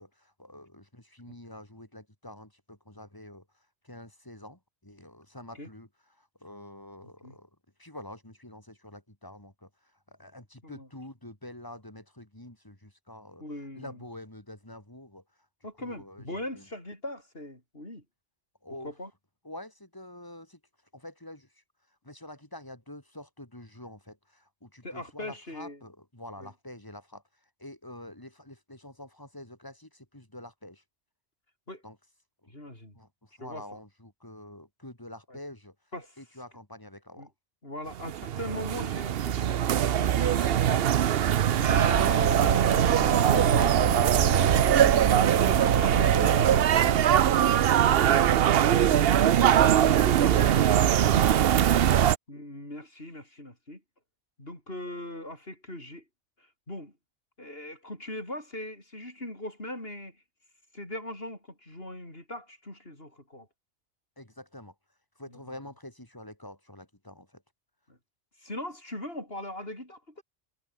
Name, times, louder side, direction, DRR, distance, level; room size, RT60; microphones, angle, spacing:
voice 1, 0.0-7.5 7.8-13.4 13.8-15.2 15.8-16.7 18.6-19.0 19.4-20.6 20.9-21.6 22.0-30.8 31.8-32.0 32.4-32.6 32.9-35.8 36.2-37.3 48.0-48.1 50.6-51.7 64.2-64.8 65.2-67.4, left 1 dB, 15° left, 3.7 m, -47 dB
voice 2, 13.4-14.0 15.6-18.0 18.8-19.1 24.8-25.8 26.4-26.5 31.7-31.8 32.5-32.9 33.4-33.6 35.3-35.4 35.9-36.2 37.2-37.3 37.6-43.7 44.3-44.6 45.3-49.1 49.7-51.3 52.3-53.8 54.4-56.0 56.4-56.9 57.4-60.2 60.7-63.5 67.9-68.0 68.4-70.2, left 1 dB, 55° left, 8.3 m, -40 dB
sound 1, 37.9-52.2, right 10 dB, 60° right, 0.8 m, -22 dB
sound 2, 41.7-46.7, right 7 dB, 90° right, 1.6 m, -26 dB
omnidirectional pair, 1.2 m